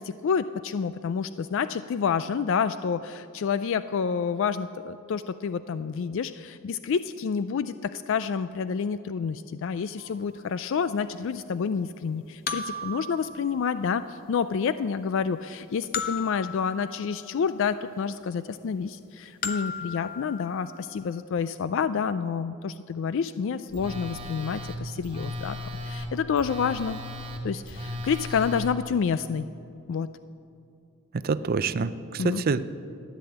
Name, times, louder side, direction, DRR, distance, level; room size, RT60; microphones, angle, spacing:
voice 1, 0.0-25.6 25.8-27.0 27.4-29.5 29.9-30.1 32.2-32.4, left 6 dB, 65° left, 13 dB, 0.4 m, -28 dB
sound 1, 10.0-10.1 12.5-14.3 15.9-17.6 19.4-20.9, left 4 dB, 45° left, 0.9 m, -36 dB
Telephone, 23.7-28.7, left 1 dB, 25° right, 1.4 m, -36 dB
voice 2, 31.1-32.8, right 4 dB, 45° right, 14 dB, 0.5 m, -27 dB
14.0 x 10.5 x 7.9 m, 2.5 s
head